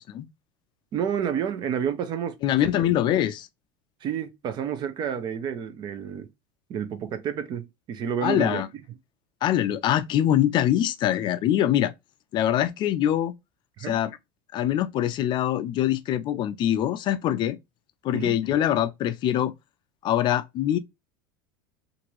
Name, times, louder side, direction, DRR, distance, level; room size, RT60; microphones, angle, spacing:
voice 1, 0.9-2.4 2.6-2.8 4.0-6.3 6.7-8.6 13.8-14.0 18.1-18.4, right 8 dB, 40° right, 0.6 m, -30 dB
voice 2, 2.4-3.5 8.2-8.7 9.4-11.9 12.3-13.3 13.9-14.2 14.5-17.6 18.0-19.5 20.0-20.8, left 11 dB, 40° left, 0.4 m, -23 dB
2.8 x 2.6 x 2.9 m
supercardioid pair, 135°, 12 cm